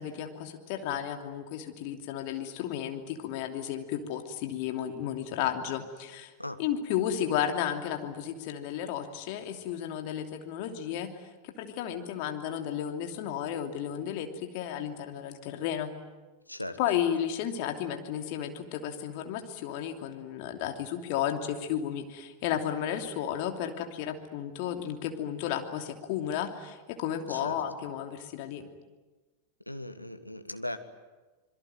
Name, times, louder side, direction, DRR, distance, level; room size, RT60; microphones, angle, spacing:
voice 1, 0.0-6.3 6.6-11.1 11.4-15.9 16.8-28.7, left 9 dB, 45° left, 5 dB, 2.9 m, -33 dB
voice 2, 16.5-16.8 27.3-27.6 29.7-30.8, left 1 dB, 90° left, 8 dB, 1.6 m, -38 dB
26.5 x 22.5 x 9.4 m, 1.2 s
figure-of-eight pair, 90°, 0 cm